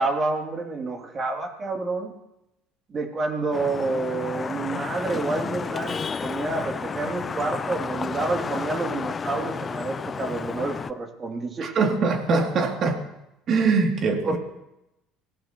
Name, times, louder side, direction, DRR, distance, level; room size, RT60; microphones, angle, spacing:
voice 1, 0.0-2.1 2.9-11.7 14.2-14.4, right 3 dB, 35° right, 3 dB, 2.9 m, -28 dB
Vehicle horn car horn honking / Traffic noise roadway noise, 3.5-10.9, left 5 dB, 30° left, 0.5 m, -31 dB
voice 2, 11.6-13.0 13.5-14.4, right 4 dB, 50° right, 2 dB, 2.9 m, -22 dB
25.0 x 17.5 x 3.1 m, 0.90 s
supercardioid pair, 85°, 0 cm